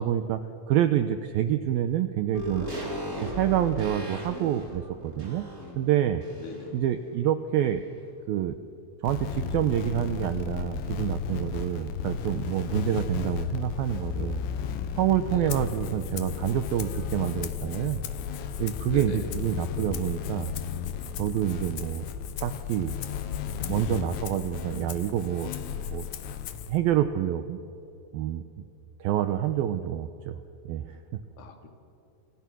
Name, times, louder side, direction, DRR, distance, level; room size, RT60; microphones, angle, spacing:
voice 1, 0.0-2.7 3.2-5.5 5.8-6.2 6.7-7.8 8.3-8.5 9.0-14.4 15.0-18.0 18.6-20.5 21.2-22.0 22.4-22.9 23.7-25.5 25.9-26.1 26.7-27.6 28.1-28.4 29.0-30.4 30.7-31.2, right 11 dB, 75° right, 9 dB, 2.3 m, -27 dB
sound 1, 2.3-6.8 7.1-7.2, equal, 20° right, 4.1 m, -37 dB
voice 2, 6.4-6.8 15.3-15.6 18.8-19.3 31.4-31.7, left 4 dB, 50° left, 4 dB, 3.7 m, -41 dB
sound 2, 9.0-26.7, left 7 dB, 80° left, 3.6 m, -34 dB
Rattle (instrument), 15.5-26.8, left 11 dB, 65° left, 2.2 m, -44 dB
29.5 x 28.0 x 6.2 m, 2.7 s
omnidirectional pair, 5.1 m